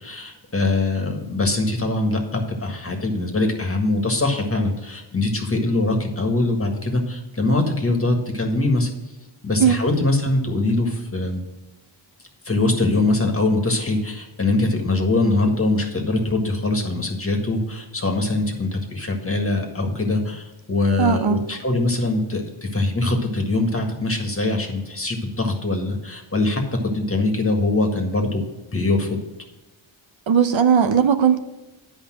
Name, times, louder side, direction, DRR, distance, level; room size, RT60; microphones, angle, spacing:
voice 1, 0.0-8.9 9.4-11.4 12.5-28.4 28.7-29.2, left 2 dB, 30° left, 3 dB, 1.6 m, -22 dB
voice 2, 21.0-21.4 30.3-31.4, right 7 dB, 70° right, 9 dB, 0.8 m, -17 dB
10.0 x 5.1 x 6.2 m, 1.1 s
wide cardioid pair, 90°, 48 cm